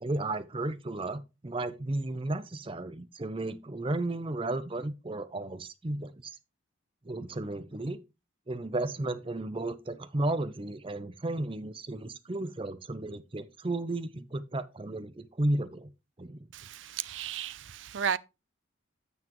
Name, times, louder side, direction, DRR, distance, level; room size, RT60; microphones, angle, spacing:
voice 1, 0.0-6.3 7.0-8.0 8.5-15.9 16.2-16.5, right 2 dB, 25° right, 0.6 m, -33 dB
voice 2, 16.5-18.2, right 8 dB, 70° right, 0.5 m, -34 dB
9.5 x 7.1 x 3.1 m
head